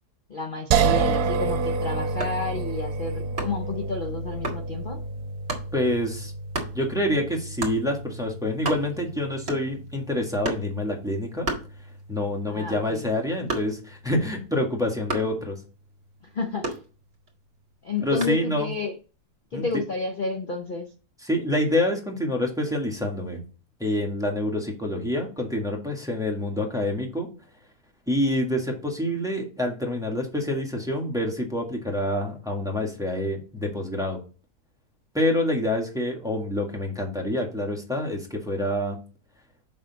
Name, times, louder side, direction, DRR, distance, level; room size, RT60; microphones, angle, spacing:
voice 1, 0.3-5.0 12.5-13.0 16.3-16.8 17.8-19.0 19.5-20.9, left 3 dB, 45° left, 4 dB, 0.7 m, -31 dB
sound 1, 0.7-13.8, right 4 dB, 85° right, 1.2 m, -30 dB
sound 2, 2.2-2.5 3.4-3.7 4.4-4.7 5.5-5.7 6.5-6.8 7.6-7.8 8.3-8.4 8.5-9.1 9.5-9.9 10.4-10.8 11.4-12.2 12.6-14.0 15.1-15.4 16.6-17.3 18.2-18.5, right 2 dB, 40° right, 1.9 m, -32 dB
voice 2, 5.7-6.3 6.7-11.5 12.1-15.6 18.0-18.7 19.5-19.6 21.2-23.4 23.8-27.3 28.1-34.2 35.1-39.0, left 1 dB, ahead, 0 dB, 1.6 m, -27 dB
6.7 x 5.6 x 4.1 m, 0.35 s
omnidirectional pair, 1.6 m